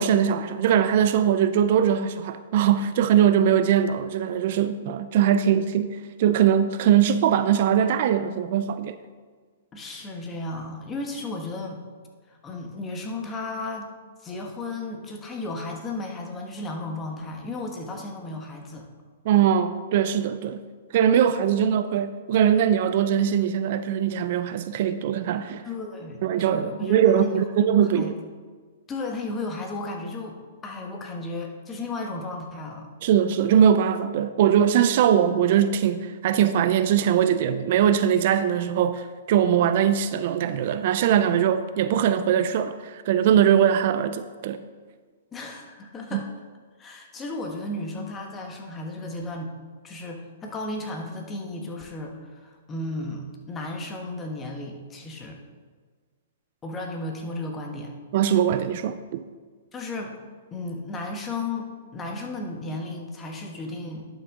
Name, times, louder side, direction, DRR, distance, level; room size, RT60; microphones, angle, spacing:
voice 1, 0.0-9.0 19.3-20.6 20.9-25.6 26.2-28.1 33.0-44.6 46.1-46.2 58.1-59.2, right 9 dB, 55° right, 12 dB, 0.4 m, -21 dB
voice 2, 9.7-11.8 12.3-13.9 14.2-18.9 25.6-27.4 27.9-28.1 28.9-32.9 45.3-46.3 46.8-49.5 49.8-55.4 56.6-57.9 59.7-60.1 60.5-64.1, left 2 dB, 20° left, 2 dB, 1.3 m, -34 dB
11.0 x 6.2 x 3.7 m, 1.5 s
hypercardioid pair, 130°, 0 cm